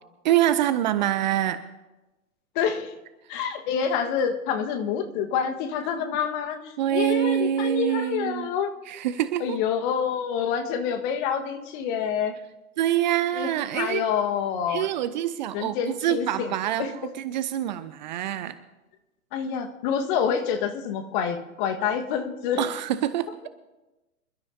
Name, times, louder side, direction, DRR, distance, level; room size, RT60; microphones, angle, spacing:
voice 1, 0.2-1.6 6.8-8.5 8.9-9.6 12.8-14.1 14.7-16.8 17.2-18.6 22.6-23.5, right 12 dB, 35° right, 14 dB, 0.5 m, -25 dB
voice 2, 2.5-2.9 3.3-6.6 6.9-8.7 9.4-12.3 13.3-14.9 15.5-16.5 16.8-16.9 19.3-22.7, left 7 dB, 35° left, 6 dB, 1.5 m, -27 dB
26.5 x 13.0 x 2.7 m, 1.1 s
figure-of-eight pair, 110°, 43 cm